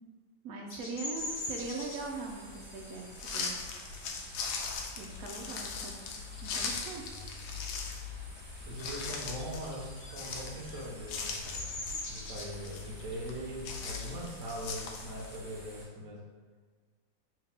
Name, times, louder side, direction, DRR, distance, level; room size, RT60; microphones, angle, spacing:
voice 1, 0.4-3.6 5.0-6.1 6.4-7.2, right 3 dB, 85° right, 1 dB, 0.7 m, -41 dB
Bird vocalization bird call bird song, 0.7-5.9 6.3-6.7 7.0-8.2 8.5-15.8, left 2 dB, 70° left, 1.4 m, -44 dB
sound 1, 1.1-15.8, right 1 dB, 40° right, 1.5 m, -51 dB
sound 2, 3.2-15.4, left 5 dB, 90° left, 1.3 m, -40 dB
voice 2, 8.6-11.4 12.1-16.2, right 1 dB, 70° right, -2 dB, 1.4 m, -41 dB
3.5 x 3.2 x 3.4 m, 1.5 s
omnidirectional pair, 2.1 m